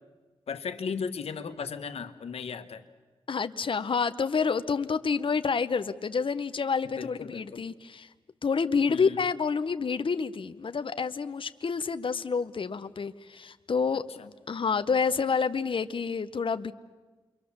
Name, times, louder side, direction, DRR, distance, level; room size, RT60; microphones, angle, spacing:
voice 1, 0.5-2.9 7.0-7.6 8.9-9.2 14.2-14.3, left 6 dB, 90° left, 8 dB, 1.4 m, -36 dB
voice 2, 3.3-8.1 8.4-14.0 14.5-16.7, left 5 dB, 60° left, 10 dB, 0.9 m, -28 dB
28.0 x 23.5 x 7.3 m, 1.3 s
cardioid pair, 55°, 10 cm